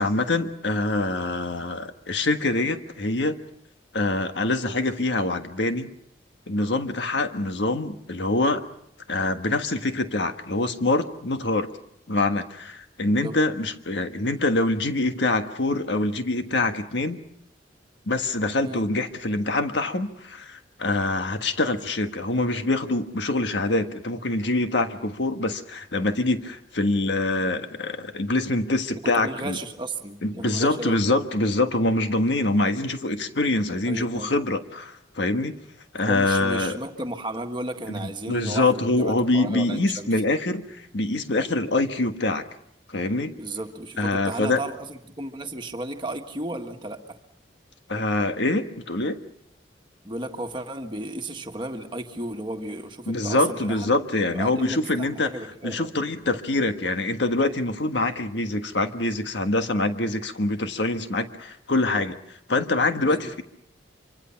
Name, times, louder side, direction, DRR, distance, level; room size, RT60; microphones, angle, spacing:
voice 1, 0.0-3.4 3.9-5.9 6.5-8.6 9.1-11.7 12.1-17.2 18.1-29.6 30.2-35.6 35.9-36.8 37.9-42.4 42.9-43.3 44.0-44.6 47.9-49.2 53.1-55.3 55.6-62.2 62.5-63.4, left 2 dB, 70° left, 7 dB, 1.5 m, -25 dB
voice 2, 13.0-13.3 18.6-18.8 29.0-31.0 33.8-34.3 36.0-40.1 43.4-47.2 50.0-53.9 54.3-55.9 63.0-63.3, right 1 dB, 25° right, 5 dB, 1.6 m, -34 dB
26.0 x 25.0 x 5.8 m, 0.75 s
head